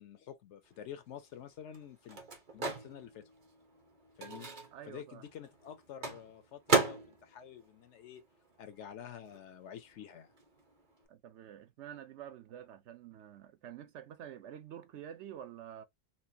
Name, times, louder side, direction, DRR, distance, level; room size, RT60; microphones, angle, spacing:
voice 1, 0.0-2.2 2.5-3.3 4.2-4.5 4.8-8.2 8.6-10.3, left 9 dB, 65° left, 0.8 m, -49 dB
Microwave oven, 0.8-8.9 9.1-11.1, right 4 dB, 40° right, 1.0 m, -37 dB
voice 2, 4.7-5.2 11.1-15.8, right 10 dB, 65° right, 0.8 m, -48 dB
4.3 x 2.4 x 2.7 m
omnidirectional pair, 1.4 m